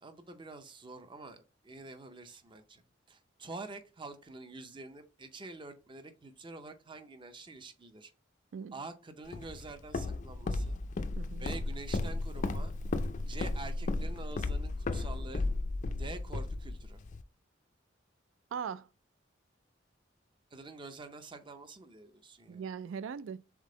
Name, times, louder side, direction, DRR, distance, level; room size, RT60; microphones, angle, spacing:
voice 1, 0.0-2.8 3.1-8.1 8.7-10.8 11.4-12.7 13.2-15.5 16.0-17.0 20.5-22.6, right 3 dB, 25° right, 0.5 m, -47 dB
Walk footsteps, 9.3-17.2, left 2 dB, 40° left, 0.4 m, -34 dB
voice 2, 11.2-11.6 18.5-18.9 22.5-23.5, right 7 dB, 80° right, 0.3 m, -40 dB
3.7 x 3.6 x 3.7 m
head